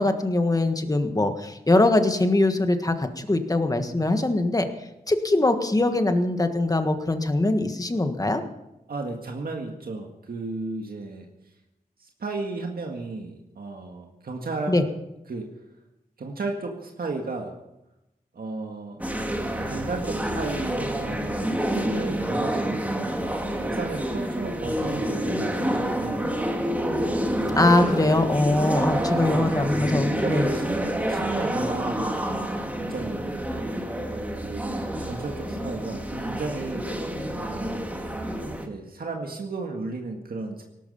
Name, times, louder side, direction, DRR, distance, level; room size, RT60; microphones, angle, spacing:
voice 1, 0.0-4.7 5.1-8.4 14.7-14.8 27.6-30.5, left 2 dB, 25° left, 7 dB, 1.5 m, -22 dB
voice 2, 8.9-11.3 12.0-14.8 15.3-15.5 16.2-17.5 18.3-19.0 19.5-23.2 23.6-26.6 28.0-28.2 28.8-29.5 30.2-33.5 34.4-36.9 37.4-37.9 38.7-40.6, right 3 dB, 80° right, 2 dB, 1.8 m, -34 dB
sound 1, 19.0-38.7, right 1 dB, 10° right, 2.0 m, -28 dB
18.0 x 13.5 x 5.5 m, 0.91 s
wide cardioid pair, 105°, 15 cm